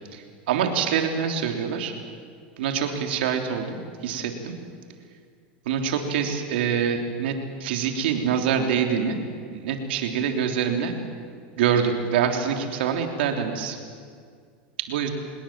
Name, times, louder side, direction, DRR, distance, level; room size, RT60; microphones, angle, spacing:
voice 1, 0.1-1.9 2.6-4.6 5.7-9.2 9.5-10.9 11.6-13.8 14.8-15.1, right 7 dB, 80° right, 4 dB, 3.5 m, -25 dB
27.0 x 20.5 x 7.6 m, 2.1 s
supercardioid pair, 120°, 6 cm